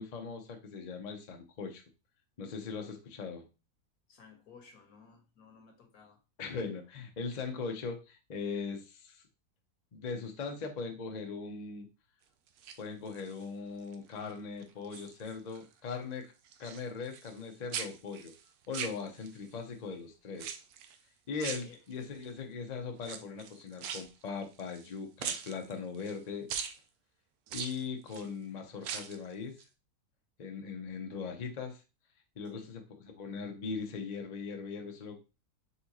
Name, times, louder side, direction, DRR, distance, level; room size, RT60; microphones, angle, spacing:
voice 1, 0.0-1.8 2.4-3.4 6.4-9.2 9.9-11.9 12.8-16.3 16.6-18.3 18.7-20.5 21.3-26.5 27.5-29.6 30.4-31.8 32.4-35.2, left 5 dB, 40° left, 0.6 m, -40 dB
voice 2, 4.1-6.2 21.6-21.8 32.5-32.7, left 5 dB, 70° left, 1.5 m, -57 dB
sound 1, 12.5-13.4 13.9-14.3 14.6-15.7 15.9-17.5 17.7-19.5 20.4-21.0 21.4-22.3 23.0-24.9 25.2-26.2 26.5-26.8 27.5-28.3 28.7-29.3 29.6-29.7, right 8 dB, 75° right, 1.1 m, -41 dB
4.2 x 3.7 x 2.9 m
omnidirectional pair, 1.6 m